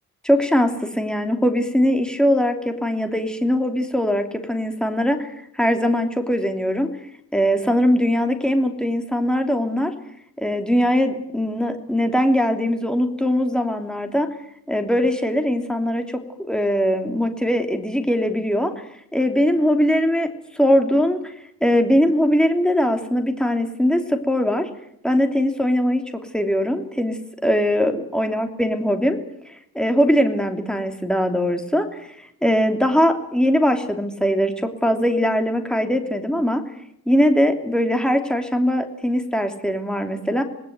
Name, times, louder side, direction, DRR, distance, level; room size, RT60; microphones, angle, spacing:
voice 1, 0.2-6.9 7.3-9.9 10.4-14.3 14.7-16.0 16.4-18.7 19.1-20.3 20.5-21.3 21.6-24.7 25.0-26.0 26.3-29.2 29.5-36.6 37.1-40.4, equal, ahead, 5 dB, 2.9 m, -21 dB
26.5 x 20.0 x 9.5 m, 0.75 s
wide cardioid pair, 130°, 37 cm